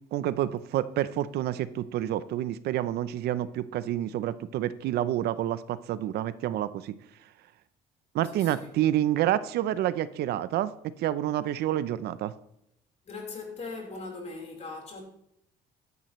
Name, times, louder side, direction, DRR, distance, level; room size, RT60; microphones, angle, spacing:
voice 1, 0.1-7.0 8.1-10.7 11.0-12.3, right 12 dB, 75° right, 0.6 m, -28 dB
voice 2, 8.3-8.7 13.0-15.0, left 3 dB, 40° left, 4.2 m, -40 dB
13.5 x 11.0 x 3.1 m
cardioid pair, 110°, 17 cm